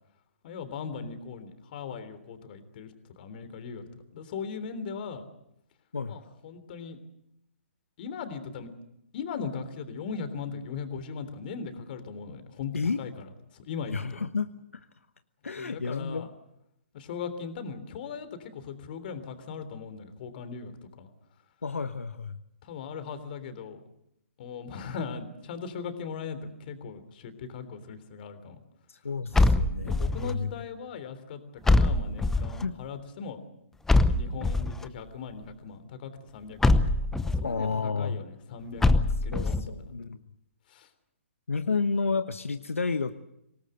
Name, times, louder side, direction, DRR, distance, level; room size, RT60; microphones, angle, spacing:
voice 1, 0.4-5.2 6.1-7.0 8.0-8.7 9.1-14.2 15.6-16.3 16.9-21.1 22.6-23.8 24.4-28.6 29.8-33.4 34.0-36.9 37.2-39.9 40.7-40.9, left 5 dB, 45° left, 10 dB, 3.3 m, -39 dB
voice 2, 13.9-14.8 15.4-16.3 21.6-22.4 28.9-30.5 32.6-32.8 37.4-38.2 39.3-40.2 41.5-43.1, left 4 dB, 85° left, 10 dB, 1.0 m, -31 dB
sound 1, 29.3-30.3 31.6-32.6 33.9-34.8 36.6-37.5 38.8-39.7, left 2 dB, 5° left, 0.8 m, -23 dB
25.5 x 18.5 x 7.9 m, 0.81 s
hypercardioid pair, 135°, 7 cm